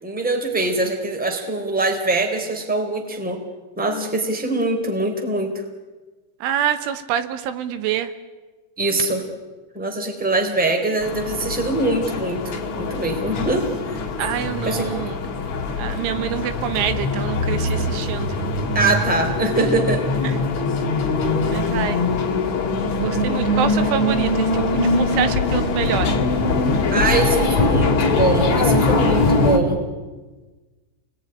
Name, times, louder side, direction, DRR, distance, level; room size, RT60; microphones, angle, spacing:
voice 1, 0.0-3.4 3.8-5.5 8.8-9.2 9.7-14.0 14.6-14.9 18.7-20.0 26.9-29.8, right 2 dB, ahead, 4 dB, 2.5 m, -23 dB
voice 2, 6.4-8.1 14.2-15.2 15.8-18.4 21.5-22.0 23.0-26.1, right 10 dB, 80° right, 11 dB, 3.6 m, -26 dB
sound 1, 11.0-29.6, left 2 dB, 40° left, 3.2 m, -22 dB
28.5 x 21.0 x 10.0 m, 1.3 s
omnidirectional pair, 5.6 m